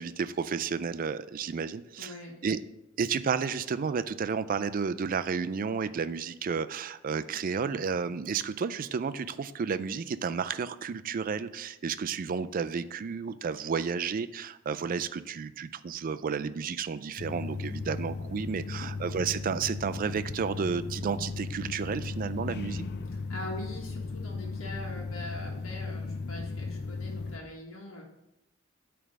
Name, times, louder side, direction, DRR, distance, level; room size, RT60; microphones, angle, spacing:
voice 1, 0.0-2.1 2.4-2.6 3.0-22.8, right 6 dB, 45° right, 13 dB, 0.4 m, -32 dB
voice 2, 2.0-2.3 18.5-18.9 23.1-28.0, left 1 dB, 80° left, -2 dB, 1.6 m, -42 dB
sound 1, 17.2-27.4, left 3 dB, 55° left, 0.5 m, -36 dB
8.8 x 3.4 x 6.3 m, 0.90 s
head